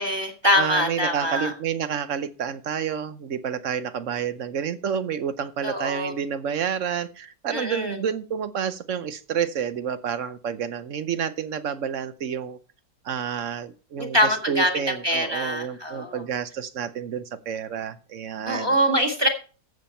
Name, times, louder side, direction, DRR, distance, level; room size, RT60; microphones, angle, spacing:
voice 1, 0.0-1.5 5.6-6.1 7.5-8.0 14.0-16.2 18.5-19.3, equal, 15° right, 3 dB, 1.6 m, -24 dB
voice 2, 0.6-12.6 13.0-18.8, right 8 dB, 55° right, 13 dB, 0.9 m, -29 dB
14.0 x 7.4 x 4.3 m, 0.38 s
omnidirectional pair, 1.8 m